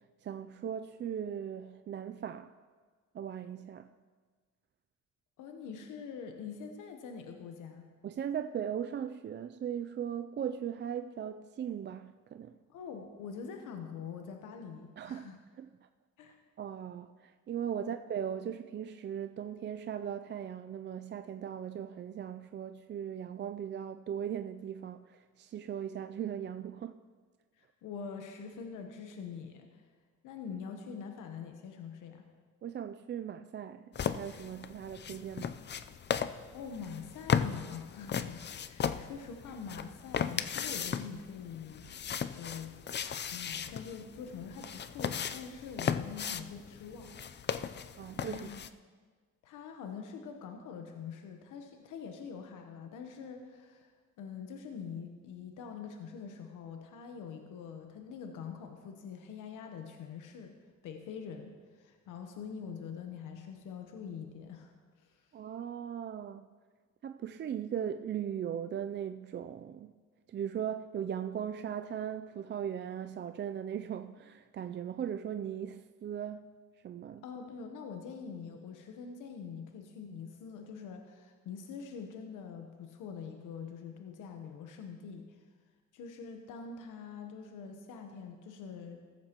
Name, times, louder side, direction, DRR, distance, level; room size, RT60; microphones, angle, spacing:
voice 1, 0.0-2.5 3.1-3.9 8.0-12.6 15.0-15.3 15.6-15.7 16.6-27.0 32.6-35.6 48.0-48.5 65.3-66.5 67.0-69.9 70.3-76.5 76.8-77.2, right 9 dB, 40° right, 0.4 m, -38 dB
voice 2, 5.4-7.8 12.7-15.4 16.2-16.4 17.8-17.9 27.6-29.8 30.2-32.2 36.5-42.8 43.3-47.2 48.3-48.6 49.4-53.9 54.2-60.5 60.8-65.3 77.2-85.4 85.9-89.0, left 6 dB, 90° left, 1.0 m, -44 dB
sound 1, 33.9-48.7, left 7 dB, 35° left, 0.5 m, -36 dB
15.0 x 14.0 x 3.0 m
cardioid pair, 90°, 30 cm